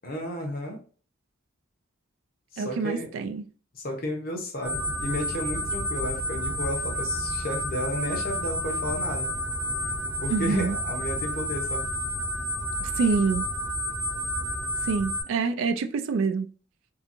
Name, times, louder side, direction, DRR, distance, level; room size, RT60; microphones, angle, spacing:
voice 1, 0.0-0.8 2.5-3.1 3.7-9.3 10.2-11.9, left 1 dB, 45° left, 0.7 m, -33 dB
voice 2, 2.6-3.5 10.3-10.8 12.8-13.5 14.8-16.5, right 4 dB, 70° right, 0.3 m, -26 dB
sound 1, 4.6-15.2, equal, 10° right, 0.6 m, -30 dB
2.8 x 2.5 x 2.5 m
head